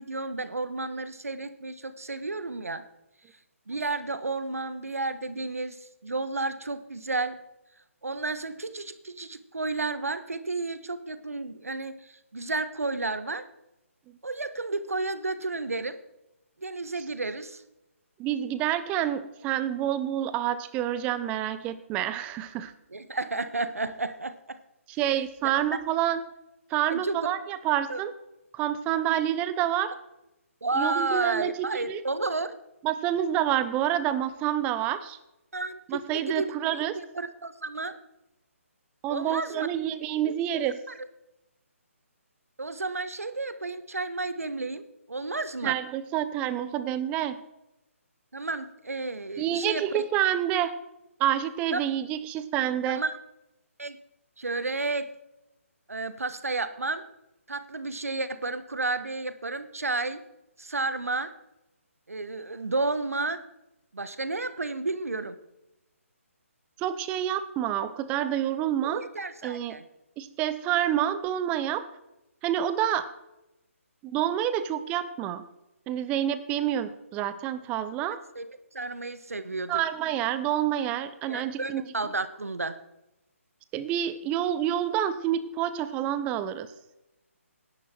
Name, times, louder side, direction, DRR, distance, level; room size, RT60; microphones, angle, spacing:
voice 1, 0.0-2.8 3.7-7.4 8.0-13.4 14.2-16.0 16.6-17.6 22.9-24.6 25.4-25.5 26.9-27.2 27.9-28.0 30.6-32.5 35.5-36.5 37.1-38.0 39.1-39.7 40.2-40.7 42.6-45.8 48.3-49.8 51.7-51.9 52.8-53.2 53.8-54.0 54.4-55.1 55.9-57.0 57.5-60.2 60.6-61.3 62.1-63.4 63.9-65.4 68.8-69.8 78.1-79.8 81.3-82.8, right 3 dB, 80° right, 12 dB, 1.4 m, -32 dB
voice 2, 18.2-22.7 24.9-26.2 26.7-28.1 28.5-29.9 30.7-32.0 32.8-35.2 35.9-37.0 39.0-40.8 45.6-47.4 49.4-50.7 51.2-53.0 66.8-69.0 69.4-69.8 70.2-71.9 72.4-73.1 74.0-75.4 75.9-78.2 79.7-81.8 83.7-86.7, right 11 dB, 15° right, 13 dB, 0.9 m, -28 dB
17.0 x 10.5 x 4.5 m, 0.90 s
figure-of-eight pair, 145°, 8 cm